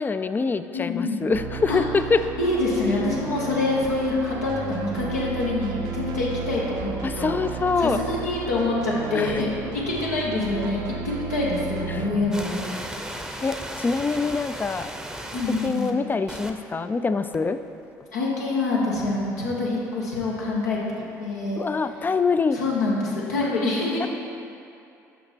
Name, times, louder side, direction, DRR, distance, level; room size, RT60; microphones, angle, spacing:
voice 1, 0.0-2.2 7.0-8.0 9.1-9.4 11.9-12.1 13.4-14.9 15.6-17.6 21.6-22.6 24.0-24.1, left 4 dB, 25° left, 11 dB, 0.4 m, -25 dB
voice 2, 0.7-1.2 1.7-1.8 2.4-7.4 7.8-9.5 9.7-12.7 15.3-15.9 18.1-21.6 22.5-24.1, left 2 dB, 85° left, -5 dB, 1.3 m, -26 dB
sound 1, 1.3-12.2, right 6 dB, 60° right, 0.6 m, -34 dB
sound 2, 12.3-15.9 16.3-16.5 17.3-17.4 21.6-21.7, right 1 dB, 5° right, 0.7 m, -36 dB
5.8 x 5.7 x 5.2 m, 2.6 s
hypercardioid pair, 60°, 8 cm